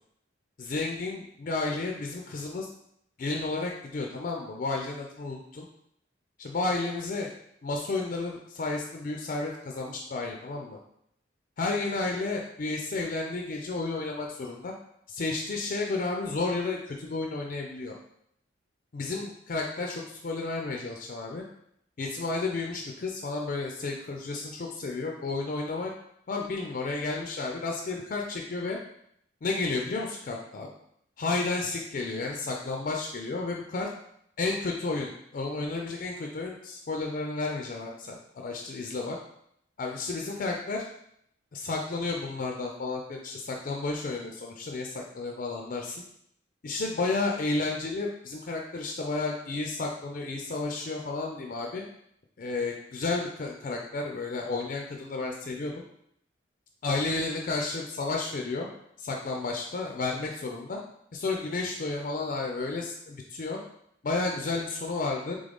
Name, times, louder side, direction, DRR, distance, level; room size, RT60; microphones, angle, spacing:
voice 1, 0.6-2.7 3.2-5.7 6.4-7.3 7.6-10.8 11.6-14.7 15.1-18.0 18.9-21.4 22.0-25.9 26.3-28.8 29.4-30.7 31.2-33.9 34.4-39.2 39.8-40.8 41.5-46.0 46.6-51.8 52.4-55.8 56.8-58.7 59.0-60.8 61.1-63.6 64.0-65.4, left 3 dB, 45° left, 1 dB, 0.4 m, -32 dB
3.8 x 3.5 x 3.5 m, 0.73 s
head